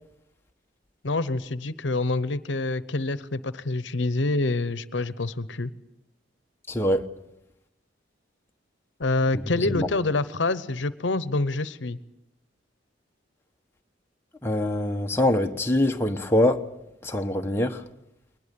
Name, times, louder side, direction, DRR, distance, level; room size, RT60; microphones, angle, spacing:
voice 1, 1.0-5.7 9.0-12.0, left 2 dB, 80° left, 0.9 m, -26 dB
voice 2, 6.7-7.1 9.8-9.9 14.4-16.6 17.0-17.8, left 1 dB, 15° left, 1.1 m, -23 dB
22.0 x 20.0 x 8.4 m
head